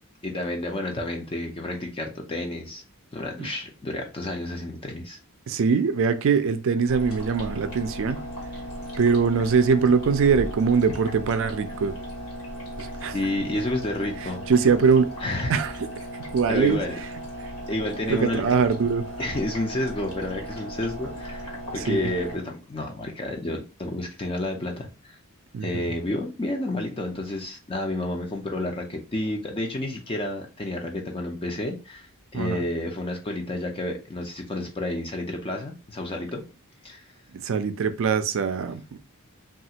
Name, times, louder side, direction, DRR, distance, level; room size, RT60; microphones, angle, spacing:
voice 1, 0.2-2.8 3.1-5.2 13.1-14.4 15.2-15.7 16.5-16.9 17.7-18.4 19.2-25.2 25.6-36.4 36.8-37.1, left 1 dB, 25° left, 0.4 m, -30 dB
voice 2, 5.5-8.2 9.0-12.0 12.8-13.1 14.5-15.1 15.5-15.7 16.3-16.8 18.1-19.0 21.8-22.1 25.5-25.8 32.3-32.6 37.3-39.0, right 5 dB, 60° right, 0.4 m, -22 dB
sound 1, 6.9-22.4, equal, 85° left, 1.3 m, -36 dB
3.2 x 2.3 x 2.8 m
head